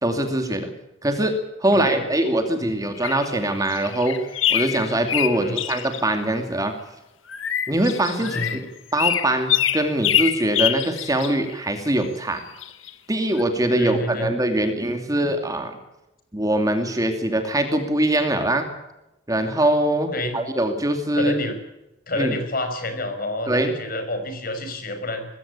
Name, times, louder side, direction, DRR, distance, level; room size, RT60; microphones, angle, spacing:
voice 1, 0.0-0.7 1.0-1.3 1.6-4.2 4.5-6.7 7.7-8.6 8.9-12.4 13.1-15.8 16.3-18.7 19.3-21.4 22.2-22.4 23.5-23.7, right 1 dB, 20° right, 6 dB, 2.5 m, -22 dB
Birds in Spring North Carolina, 3.0-6.1 7.3-8.6 9.0-12.0 12.6-12.9 13.4-13.5, left 10 dB, 90° left, 1.4 m, -25 dB
voice 2, 8.2-8.6 13.8-14.3 20.1-20.4 21.1-21.6 22.1-25.3, left 1 dB, 50° left, 7 dB, 5.5 m, -28 dB
21.0 x 16.5 x 8.3 m, 0.93 s
head